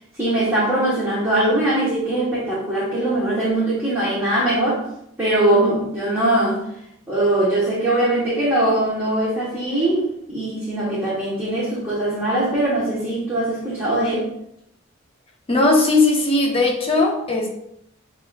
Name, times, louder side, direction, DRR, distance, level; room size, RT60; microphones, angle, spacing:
voice 1, 0.1-4.8 5.2-6.6 7.1-14.3, right 1 dB, 10° right, -9 dB, 1.0 m, -21 dB
voice 2, 15.5-17.5, left 2 dB, 30° left, 0 dB, 0.7 m, -18 dB
7.4 x 2.5 x 2.3 m, 0.78 s
head